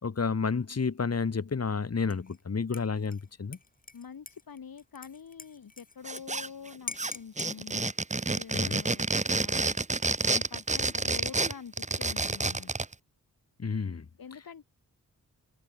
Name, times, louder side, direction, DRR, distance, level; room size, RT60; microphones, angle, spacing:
voice 1, 0.0-3.6 8.5-8.8 13.6-14.1, left 5 dB, 45° left, 3.6 m, -30 dB
Dishes pots and pans / Liquid, 2.1-2.4 2.7-6.2 6.5-6.6 6.9-7.5 8.4-8.9, left 3 dB, 25° left, 2.0 m, -44 dB
voice 2, 3.9-7.9 8.3-9.8 10.2-12.7 14.2-14.7, left 7 dB, 75° left, 4.5 m, -46 dB
sound 1, 6.1-6.7 7.0-12.9, right 3 dB, 20° right, 1.2 m, -29 dB
wide cardioid pair, 170°, 36 cm